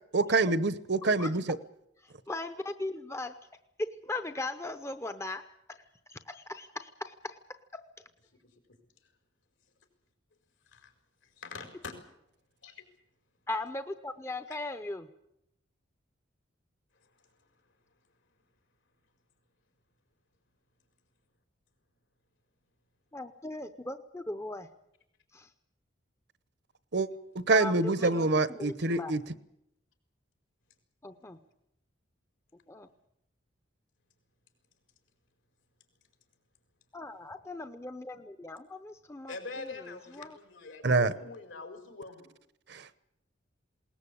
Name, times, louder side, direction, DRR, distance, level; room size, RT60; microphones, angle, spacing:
voice 1, 0.1-1.6 26.9-27.1 27.3-29.2 40.8-41.1 42.7-42.9, right 3 dB, 60° right, 15 dB, 1.0 m, -26 dB
voice 2, 2.3-3.4 3.8-5.4 6.1-7.4 7.7-7.8 13.5-15.1 23.1-24.7 25.3-25.5 27.5-29.1 31.0-31.4 32.7-32.9 36.9-40.4, left 2 dB, 15° left, 9 dB, 0.7 m, -38 dB
voice 3, 11.2-11.9 12.6-12.9 17.2-17.3 39.3-42.3, left 3 dB, 80° left, 6 dB, 4.9 m, -44 dB
20.5 x 19.0 x 8.6 m, 0.81 s
head